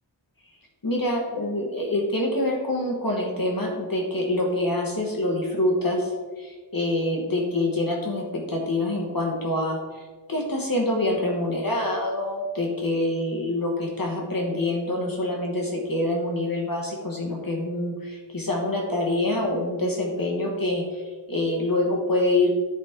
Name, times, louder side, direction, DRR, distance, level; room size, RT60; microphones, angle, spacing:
voice 1, 0.8-10.0 10.3-22.5, left 1 dB, 50° left, -1 dB, 1.4 m, -26 dB
10.5 x 5.2 x 3.6 m, 1.4 s
wide cardioid pair, 60°, 45 cm